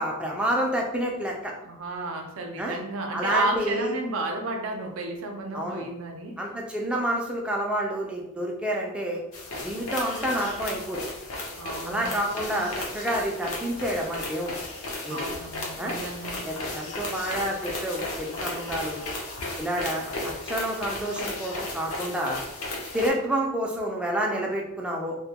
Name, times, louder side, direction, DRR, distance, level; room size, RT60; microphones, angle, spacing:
voice 1, 0.0-1.5 2.6-2.8 3.1-3.9 5.5-5.9 6.4-9.2 9.6-11.0 11.8-14.6 15.0-15.2 15.8-16.0 16.5-19.0 19.6-22.4 22.9-25.1, right 1 dB, 5° right, -1 dB, 0.3 m, -29 dB
voice 2, 1.6-6.4 11.6-12.1 15.1-16.5, right 2 dB, 65° right, 3 dB, 0.4 m, -32 dB
sound 1, 9.3-23.1, left 2 dB, 80° left, 0.6 m, -35 dB
2.1 x 2.1 x 2.8 m, 0.87 s
head